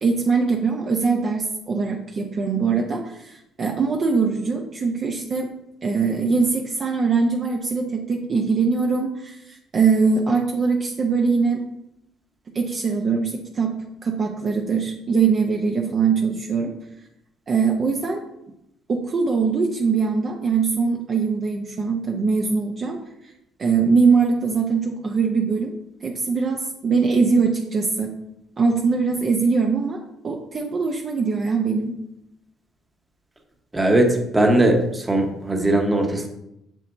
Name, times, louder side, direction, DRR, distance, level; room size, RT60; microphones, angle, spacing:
voice 1, 0.0-5.5 5.8-11.7 12.5-13.8 14.0-16.7 17.5-18.2 18.9-23.0 23.6-25.7 26.0-28.1 28.6-30.0 30.2-32.0, right 5 dB, 40° right, 1 dB, 0.8 m, -22 dB
voice 2, 33.7-36.3, right 1 dB, 15° right, 2 dB, 1.1 m, -19 dB
7.4 x 6.7 x 2.7 m, 0.82 s
cardioid pair, 125°, 0 cm